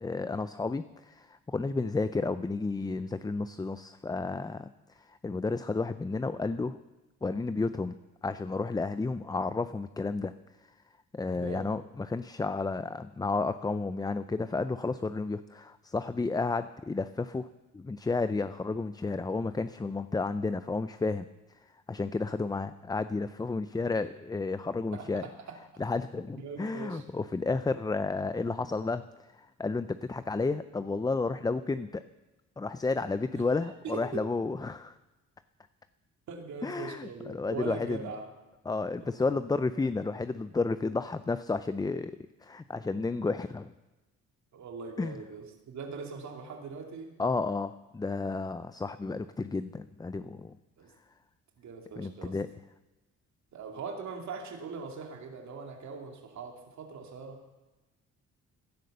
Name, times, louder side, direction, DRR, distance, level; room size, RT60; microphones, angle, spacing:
voice 1, 0.0-6.8 7.2-10.3 10.6-10.7 11.1-17.5 17.7-21.3 21.7-25.2 25.8-29.0 29.3-32.0 32.6-35.0 36.6-38.1 38.7-43.7 45.0-45.2 47.2-50.5 52.0-52.5, left 3 dB, 15° left, 12 dB, 0.5 m, -32 dB
voice 2, 11.3-11.7 24.9-25.1 26.3-27.0 33.3-34.2 36.3-38.3 44.5-47.1 50.8-50.9 51.6-52.4 53.5-57.4, right 5 dB, 65° right, 2 dB, 2.5 m, -41 dB
16.5 x 11.0 x 6.7 m, 1.1 s
cardioid pair, 90°, 30 cm